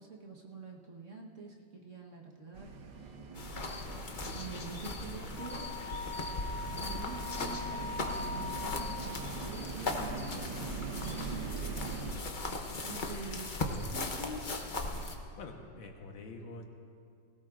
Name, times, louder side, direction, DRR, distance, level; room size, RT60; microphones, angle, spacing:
voice 1, 0.0-3.2 4.2-5.6 6.8-11.8 12.5-14.7, right 3 dB, 45° right, -2 dB, 1.4 m, -47 dB
sound 1, 2.5-12.1, right 4 dB, 70° right, 1.8 m, -42 dB
sound 2, 3.4-15.2, left 2 dB, 45° left, 0.6 m, -38 dB
Wind instrument woodwind instrument, 5.4-9.2, left 4 dB, 60° left, 3.0 m, -41 dB
voice 2, 15.4-16.7, left 3 dB, 90° left, 3 dB, 2.0 m, -46 dB
19.5 x 17.5 x 2.5 m, 2.3 s
omnidirectional pair, 2.1 m